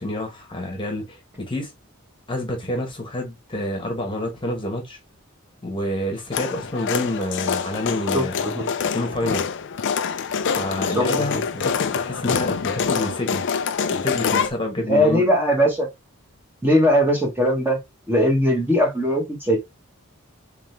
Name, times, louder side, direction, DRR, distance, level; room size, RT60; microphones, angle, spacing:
voice 1, 0.0-1.7 2.3-5.0 5.6-8.3 8.8-9.4 10.5-13.4 13.9-15.3, left 1 dB, 25° left, 1.2 m, -28 dB
sound 1, 6.3-14.5, left 6 dB, 60° left, 0.5 m, -25 dB
voice 2, 8.1-8.7 10.9-11.1 14.9-15.9 16.6-17.8 18.1-19.6, equal, 10° right, 1.2 m, -19 dB
3.8 x 3.3 x 3.2 m
head